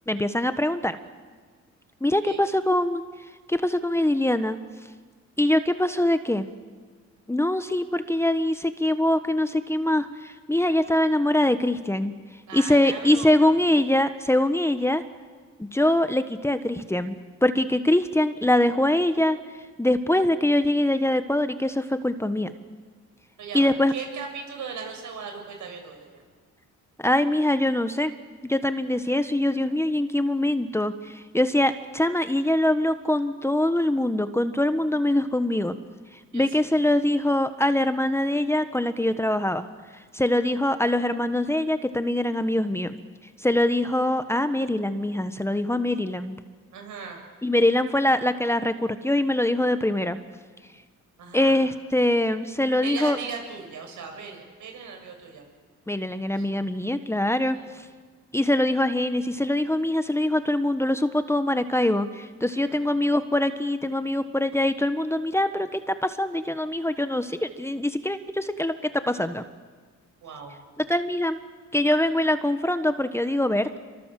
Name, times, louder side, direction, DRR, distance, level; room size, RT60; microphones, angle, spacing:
voice 1, 0.1-1.0 2.0-3.0 3.5-4.6 5.4-6.5 7.3-12.1 12.5-15.0 15.6-17.1 17.4-19.4 19.8-22.5 23.5-23.9 27.0-28.1 28.4-35.8 36.1-39.7 40.1-42.9 43.4-46.4 47.4-50.2 51.3-53.2 55.9-57.8 58.3-69.4 70.9-71.4 71.7-73.8, left 1 dB, 10° left, 10 dB, 1.3 m, -23 dB
voice 2, 12.5-13.5 23.4-26.2 36.3-36.5 46.7-47.2 51.2-51.6 52.8-55.4 56.3-56.5 57.5-57.7 62.5-62.9 70.2-70.5, right 5 dB, 75° right, 4 dB, 7.2 m, -38 dB
28.0 x 24.0 x 7.6 m, 1.5 s
cardioid pair, 90°, 30 cm